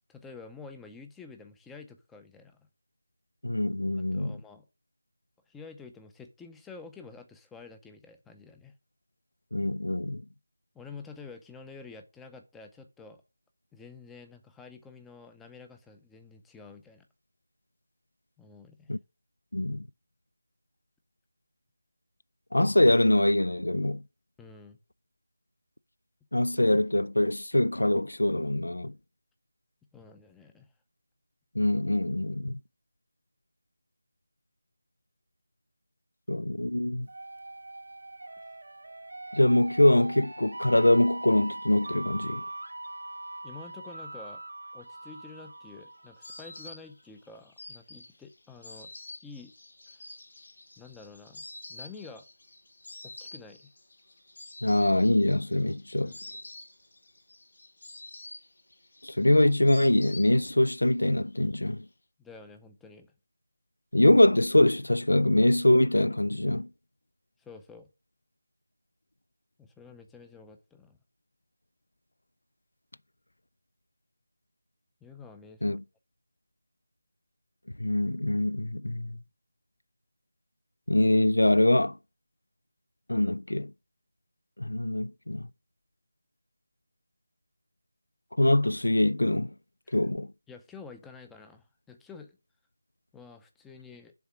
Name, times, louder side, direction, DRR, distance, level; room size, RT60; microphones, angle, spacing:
voice 1, 0.1-2.6 4.0-4.6 5.5-8.7 10.7-13.2 13.7-17.1 18.4-18.9 24.4-24.8 29.9-30.7 43.4-44.4 44.7-48.9 49.2-49.5 49.9-50.1 50.8-52.3 53.0-53.7 56.0-56.3 62.2-63.1 67.4-67.9 69.6-71.0 75.0-75.8 89.9-90.0 90.5-92.4 93.1-94.1, left 4 dB, 5° left, 0.5 m, -49 dB
voice 2, 3.4-4.4 9.5-10.2 18.9-19.0 19.5-19.9 22.5-24.0 26.3-28.9 31.6-32.6 36.3-37.1 39.3-42.4 54.6-56.1 59.0-61.9 63.9-66.7 75.6-75.8 77.8-79.2 80.9-81.9 83.1-83.7 84.6-85.5 88.4-89.5 89.9-90.3, left 1 dB, 90° left, 0.3 m, -23 dB
sound 1, 37.1-46.8, right 2 dB, 75° right, 0.8 m, -41 dB
Insect, 45.1-60.8 61.0-61.8, left 2 dB, 65° left, 1.2 m, -48 dB
6.9 x 3.6 x 6.0 m
figure-of-eight pair, 165°, 0 cm